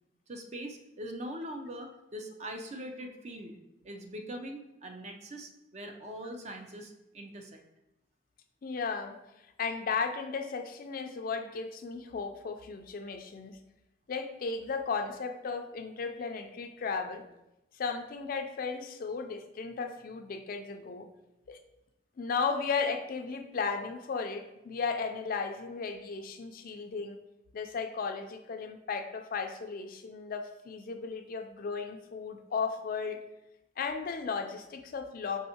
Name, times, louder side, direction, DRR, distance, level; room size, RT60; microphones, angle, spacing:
voice 1, 0.3-3.5 3.8-7.6, equal, 40° right, 4 dB, 0.5 m, -42 dB
voice 2, 8.6-9.1 9.6-13.6 14.1-17.3 17.7-21.1 21.5-21.6 22.2-27.2 27.5-33.2 33.8-35.4, left 5 dB, 50° left, 6 dB, 0.4 m, -35 dB
5.4 x 3.5 x 2.8 m, 0.91 s
head